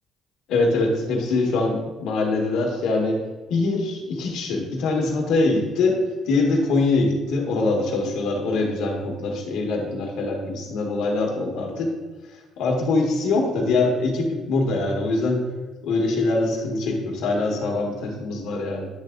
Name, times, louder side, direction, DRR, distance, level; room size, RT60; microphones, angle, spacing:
voice 1, 0.5-3.2 3.5-11.9 12.6-15.4 15.8-18.9, left 3 dB, 80° left, 1 dB, 1.3 m, -23 dB
9.5 x 3.4 x 3.8 m, 1.3 s
cardioid pair, 150°, 0 cm